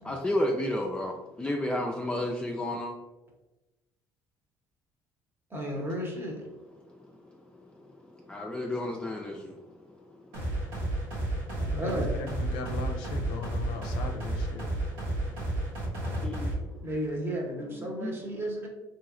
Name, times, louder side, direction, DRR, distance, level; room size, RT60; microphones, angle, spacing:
voice 1, 0.1-1.1 1.4-2.9 8.3-9.3 16.2-16.5 18.0-18.2, left 1 dB, 10° left, 0 dB, 0.3 m, -30 dB
voice 2, 5.5-6.5 11.6-12.1 16.8-18.7, equal, 30° right, 1 dB, 0.8 m, -33 dB
sound 1, 10.3-16.5, right 1 dB, 85° right, 1.0 m, -32 dB
voice 3, 11.8-14.7, left 3 dB, 85° left, 4 dB, 0.4 m, -37 dB
2.9 x 2.7 x 2.4 m, 1.0 s
supercardioid pair, 85°, 8 cm